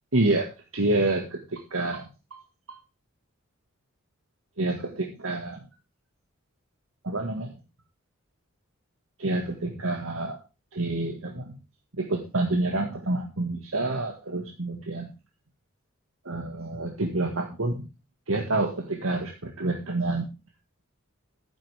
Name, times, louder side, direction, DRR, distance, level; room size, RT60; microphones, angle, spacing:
voice 1, 0.1-2.1 2.7-2.8 4.6-5.6 7.0-7.5 9.2-10.4 10.7-11.5 12.0-15.1 16.3-17.9 18.3-20.3, right 2 dB, 80° right, 3 dB, 1.9 m, -28 dB
12.0 x 10.5 x 3.5 m, 0.28 s
head